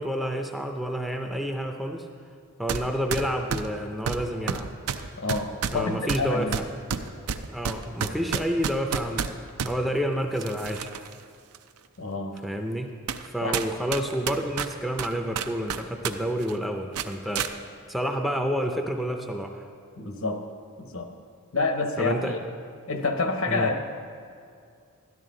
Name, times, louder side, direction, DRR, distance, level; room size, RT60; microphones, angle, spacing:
voice 1, 0.0-2.1 2.6-4.7 5.7-6.5 7.5-9.3 9.6-10.9 12.4-12.9 13.2-17.5 17.9-19.7 22.0-22.4 23.5-23.7, equal, ahead, 3 dB, 0.4 m, -29 dB
sound 1, 2.7-2.8 3.1-9.7 10.4-11.1 11.5-11.6 12.4-12.5 13.1-13.3 13.5-16.1 16.4-16.6 16.9-17.5, right 7 dB, 85° right, 0.5 m, -30 dB
voice 2, 5.2-6.6 12.0-12.4 13.4-13.7 20.0-20.4 20.8-21.1 21.5-22.2 22.9-23.8, left 3 dB, 65° left, 5 dB, 0.9 m, -28 dB
13.0 x 10.5 x 3.8 m, 2.3 s
head